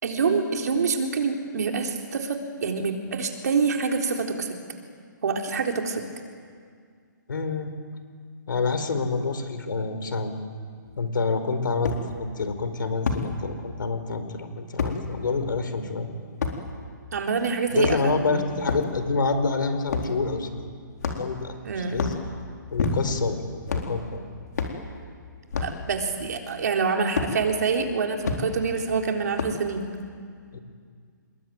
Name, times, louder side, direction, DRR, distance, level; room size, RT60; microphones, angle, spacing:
voice 1, 0.0-4.5 5.2-6.0 17.1-18.4 21.6-22.0 25.6-29.8, right 5 dB, 55° right, 2 dB, 3.8 m, -26 dB
voice 2, 7.3-7.7 8.5-10.3 11.0-16.1 17.7-20.7 21.2-22.1 22.7-24.2 30.5-30.6, left 4 dB, 75° left, 9 dB, 4.7 m, -27 dB
sound 1, 10.8-10.9 11.8-12.0 13.1-13.3 14.8-15.0 16.4-16.6 17.7-18.2 18.6-18.9 19.9-20.1 21.0-21.4 21.9-22.2 22.8-23.2 23.7-23.9 24.5-24.8 25.5-25.8 27.2-27.3 28.2-28.4 29.4-29.7, left 5 dB, 55° left, 4.0 m, -27 dB
28.5 x 21.5 x 9.4 m, 2.1 s
hypercardioid pair, 175°, 11 cm